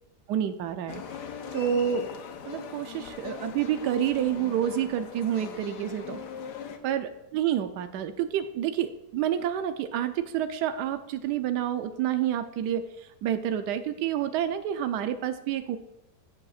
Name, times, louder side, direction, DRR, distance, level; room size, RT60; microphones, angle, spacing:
voice 1, 0.3-1.0 1.5-2.1 2.4-6.2 6.8-12.8 13.2-15.8, right 10 dB, 85° right, 9 dB, 1.2 m, -28 dB
sound 1, 0.9-6.8, left 6 dB, 80° left, 1.4 m, -40 dB
13.5 x 7.6 x 2.4 m, 0.91 s
omnidirectional pair, 1.8 m